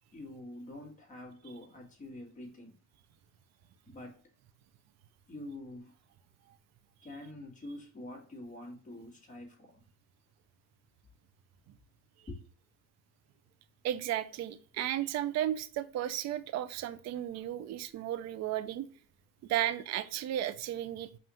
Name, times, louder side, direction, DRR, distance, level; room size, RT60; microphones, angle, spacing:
voice 1, 0.1-2.7 3.9-4.2 5.3-5.9 7.0-9.8 12.3-12.5, left 1 dB, 15° left, 1.6 m, -46 dB
voice 2, 13.8-18.9 19.4-21.1, right 12 dB, 40° right, 0.4 m, -34 dB
5.4 x 2.5 x 2.9 m
cardioid pair, 115°, 44 cm